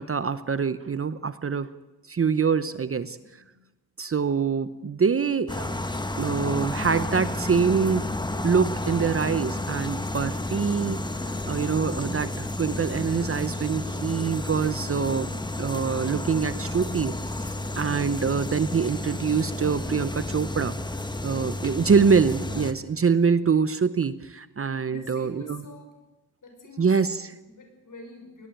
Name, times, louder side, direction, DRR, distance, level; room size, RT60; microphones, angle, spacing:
voice 1, 0.0-1.7 2.1-3.2 4.0-5.8 6.2-8.1 8.4-11.0 11.5-15.3 15.6-20.8 21.2-25.3 26.8-27.3, right 6 dB, 35° right, 14 dB, 0.8 m, -25 dB
voice 2, 3.2-3.5 22.7-23.0 24.9-26.0 26.4-27.0 27.2-28.5, left 1 dB, 50° left, 4 dB, 5.9 m, -47 dB
sound 1, 5.5-22.7, left 2 dB, 10° left, 1.2 m, -31 dB
21.5 x 18.5 x 9.1 m, 1.0 s
wide cardioid pair, 150°, 39 cm